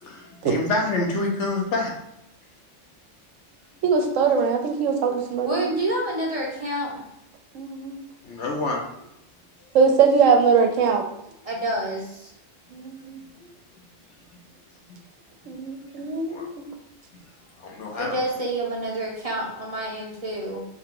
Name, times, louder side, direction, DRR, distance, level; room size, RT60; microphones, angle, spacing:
voice 1, 0.0-1.9 8.2-9.0 13.4-13.5 16.3-16.5 17.6-18.1, left 2 dB, 70° left, 0 dB, 1.1 m, -27 dB
voice 2, 3.8-5.6 7.5-8.0 9.7-11.1 12.7-13.2 15.5-16.7, right 5 dB, 80° right, 5 dB, 1.0 m, -21 dB
voice 3, 5.4-7.0 11.4-12.3 17.9-20.7, right 1 dB, 35° right, -3 dB, 0.7 m, -28 dB
3.4 x 2.8 x 3.7 m, 0.80 s
omnidirectional pair, 1.3 m